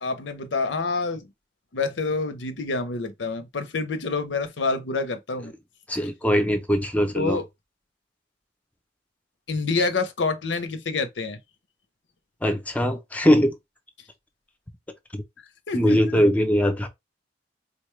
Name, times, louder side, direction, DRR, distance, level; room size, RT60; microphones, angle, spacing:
voice 1, 0.0-1.3 1.7-5.5 7.1-7.5 9.5-11.4 15.7-16.2, left 3 dB, 90° left, 0.7 m, -27 dB
voice 2, 5.9-7.4 12.4-13.5 15.1-15.2 15.7-16.9, equal, 10° left, 0.6 m, -21 dB
4.0 x 2.2 x 3.1 m
head